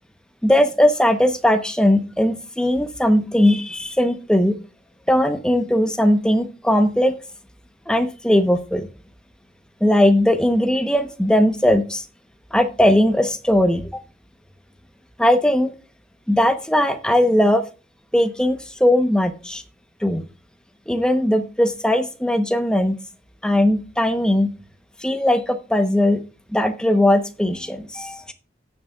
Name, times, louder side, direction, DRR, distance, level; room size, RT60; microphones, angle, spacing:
voice 1, 0.4-4.6 5.1-7.2 7.9-8.9 9.8-12.0 12.5-13.9 15.2-15.7 16.3-17.6 18.1-19.6 20.0-20.2 20.9-23.0 23.4-24.5 25.0-26.2 26.5-28.3, left 1 dB, 5° left, 7 dB, 0.9 m, -19 dB
17.0 x 6.8 x 2.4 m, 0.34 s
head